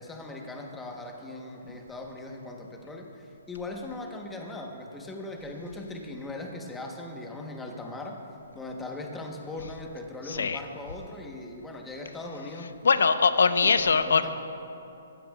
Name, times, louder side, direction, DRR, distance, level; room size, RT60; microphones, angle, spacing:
voice 1, 0.0-8.2 8.5-12.8 13.6-14.3, left 2 dB, 5° left, 1 dB, 1.1 m, -39 dB
voice 2, 10.3-10.6 12.8-14.3, left 5 dB, 85° left, 10 dB, 0.8 m, -22 dB
19.5 x 15.5 x 2.4 m, 2.8 s
hypercardioid pair, 160°, 0 cm